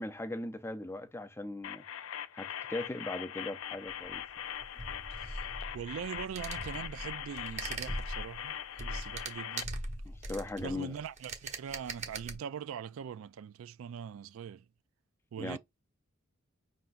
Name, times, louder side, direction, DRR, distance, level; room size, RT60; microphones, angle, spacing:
voice 1, 0.0-1.8 2.3-4.2 10.1-10.9 15.4-15.6, left 1 dB, 10° left, 0.4 m, -39 dB
sound 1, 1.6-9.6, left 10 dB, 80° left, 0.4 m, -41 dB
sound 2, 3.7-12.4, right 2 dB, 35° right, 0.9 m, -41 dB
voice 2, 5.1-9.8 10.6-14.7 15.3-15.6, right 8 dB, 80° right, 0.3 m, -42 dB
5.6 x 3.9 x 2.4 m
head